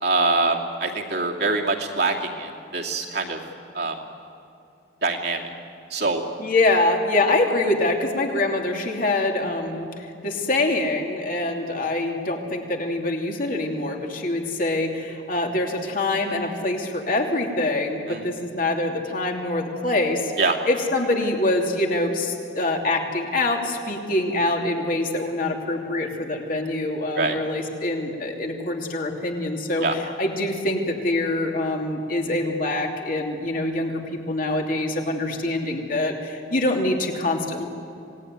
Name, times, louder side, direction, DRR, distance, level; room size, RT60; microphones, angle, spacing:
voice 1, 0.0-3.4 3.7-4.0 5.0-5.4 5.9-6.2 18.1-18.3 20.4-20.6 27.2-27.4 29.8-30.0, right 3 dB, 60° right, 0 dB, 2.6 m, -24 dB
voice 2, 6.4-20.3 20.6-34.0 34.3-37.7, left 2 dB, 45° left, 1 dB, 2.9 m, -25 dB
26.5 x 18.0 x 9.5 m, 2.7 s
head